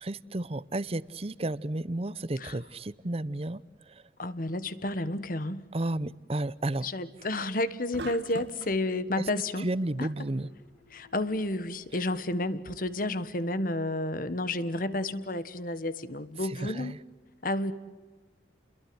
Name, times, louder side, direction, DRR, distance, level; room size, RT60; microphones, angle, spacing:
voice 1, 0.0-3.6 5.7-6.9 9.2-9.3 9.6-10.5 16.5-17.0, right 1 dB, 35° right, 18 dB, 0.7 m, -32 dB
voice 2, 4.2-5.7 6.8-9.7 10.0-10.1 10.9-16.9 17.4-17.7, left 2 dB, 50° left, 14 dB, 1.4 m, -31 dB
sound 1, 7.9-8.8, right 2 dB, 75° right, 1.5 m, -40 dB
sound 2, 9.0-13.9, left 1 dB, 85° left, 7.8 m, -60 dB
30.0 x 22.5 x 7.9 m, 1.3 s
head